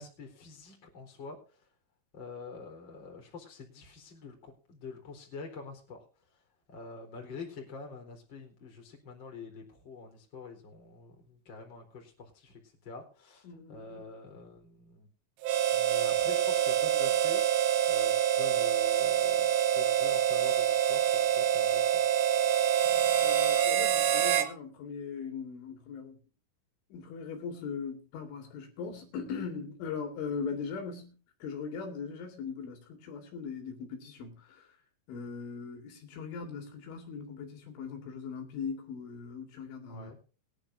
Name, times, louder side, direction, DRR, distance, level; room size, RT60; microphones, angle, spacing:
voice 1, 0.0-1.6 2.1-6.0 6.7-15.1 15.7-19.5 19.7-22.0 22.9-23.2 39.9-40.2, left 4 dB, 25° left, 4.0 m, -46 dB
voice 2, 13.4-14.1 23.2-26.2 26.9-34.8 35.1-40.2, left 5 dB, 70° left, 4.6 m, -40 dB
Harmonica, 15.4-24.5, right 10 dB, 80° right, 3.5 m, -26 dB
22.0 x 10.5 x 2.7 m
omnidirectional pair, 5.9 m